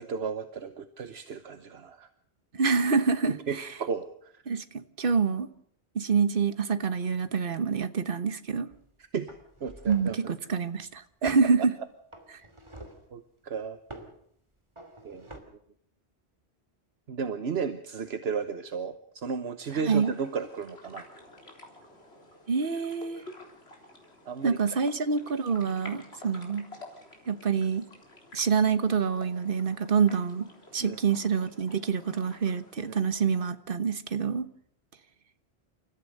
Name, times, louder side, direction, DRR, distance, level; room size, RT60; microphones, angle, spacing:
voice 1, 0.0-2.1 3.3-4.4 9.1-9.3 9.6-10.2 11.2-11.3 13.1-13.8 15.0-15.4 17.1-21.0 24.3-24.6 30.8-31.0 32.8-33.0, right 6 dB, 75° right, 1.3 m, -34 dB
voice 2, 2.5-3.7 4.5-5.5 5.9-8.7 9.9-11.7 19.7-20.1 22.5-23.2 24.4-26.7 27.3-27.8 28.3-30.5 30.7-34.5, right 5 dB, 55° right, 1.3 m, -26 dB
sound 1, 8.7-8.9 9.3-10.3 11.2-11.5 12.1-13.1 13.9-14.2 14.7-15.4, right 1 dB, 25° right, 2.8 m, -47 dB
sound 2, 19.6-33.5, left 1 dB, 75° left, 4.1 m, -51 dB
29.0 x 14.0 x 6.6 m
omnidirectional pair, 1.1 m